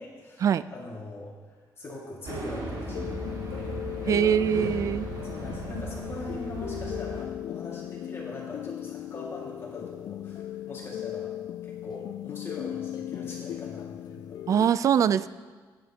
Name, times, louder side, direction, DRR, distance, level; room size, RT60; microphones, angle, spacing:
voice 1, 0.0-4.4 5.2-11.3 11.6-14.4, left 2 dB, 35° left, -3 dB, 2.0 m, -42 dB
sound 1, 2.2-7.2, right 2 dB, 75° right, 3.0 m, -37 dB
sound 2, 2.9-14.7, left 11 dB, 65° left, 0.3 m, -37 dB
voice 2, 4.1-5.1 14.5-15.3, right 9 dB, 50° right, 15 dB, 0.3 m, -23 dB
15.5 x 9.6 x 2.9 m, 1.4 s
cardioid pair, 120°, 7 cm